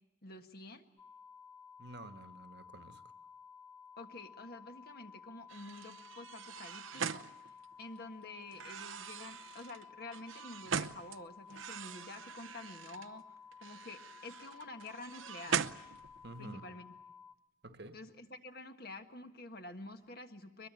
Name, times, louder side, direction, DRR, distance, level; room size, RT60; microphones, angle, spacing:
voice 1, 0.2-0.8 4.0-15.7 16.4-16.9 17.9-20.7, left 2 dB, 50° left, 7 dB, 1.6 m, -49 dB
sound 1, 1.0-17.3, left 6 dB, 20° left, 1.2 m, -55 dB
voice 2, 1.8-3.0 16.2-16.7 17.6-18.0, right 1 dB, 55° right, 9 dB, 1.3 m, -50 dB
sound 2, 5.5-8.0 8.5-11.2 11.5-13.1 13.5-16.4, right 7 dB, 90° right, 0.8 m, -41 dB
22.5 x 22.0 x 9.0 m, 0.91 s
head